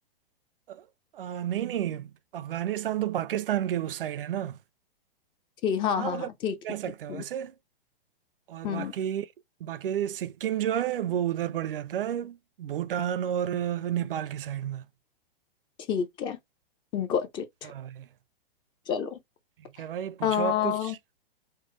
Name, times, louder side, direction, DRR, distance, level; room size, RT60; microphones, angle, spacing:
voice 1, 1.1-4.6 6.0-6.3 6.6-7.5 8.5-9.3 9.6-14.8 17.6-18.1 19.8-21.0, right 10 dB, 70° right, 0.4 m, -31 dB
voice 2, 5.6-6.6 7.1-7.2 8.6-8.9 15.9-16.4 16.9-17.7 18.9-19.2 20.2-20.9, left 8 dB, 15° left, 0.4 m, -28 dB
4.4 x 2.0 x 3.1 m
hypercardioid pair, 115°, 29 cm